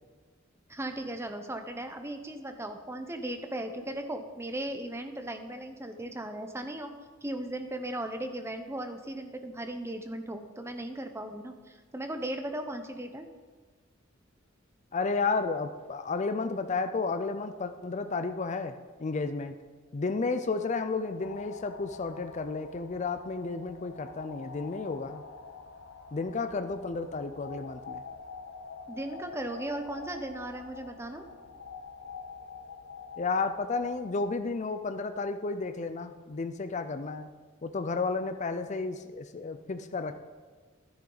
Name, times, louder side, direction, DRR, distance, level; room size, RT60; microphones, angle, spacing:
voice 1, 0.7-6.9 7.2-13.3 28.9-31.3, right 1 dB, 15° right, 6 dB, 0.8 m, -37 dB
voice 2, 14.9-18.7 19.0-19.6 19.9-25.2 26.1-28.0 33.2-37.3 37.6-40.1, left 4 dB, 35° left, 8 dB, 0.5 m, -32 dB
sound 1, 21.2-34.5, left 5 dB, 65° left, 0.8 m, -46 dB
12.5 x 10.5 x 4.0 m, 1.4 s
head